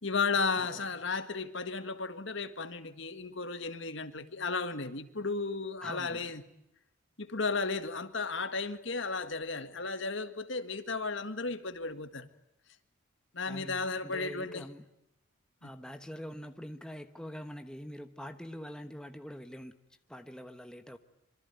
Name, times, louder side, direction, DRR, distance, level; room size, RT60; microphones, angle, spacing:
voice 1, 0.0-6.4 7.2-12.3 13.3-14.6 15.6-15.7, left 4 dB, 60° left, 1.8 m, -34 dB
voice 2, 0.6-0.9 5.8-6.3 13.5-14.9 15.6-19.8 20.1-21.0, equal, 5° left, 1.1 m, -44 dB
26.0 x 24.5 x 9.3 m
head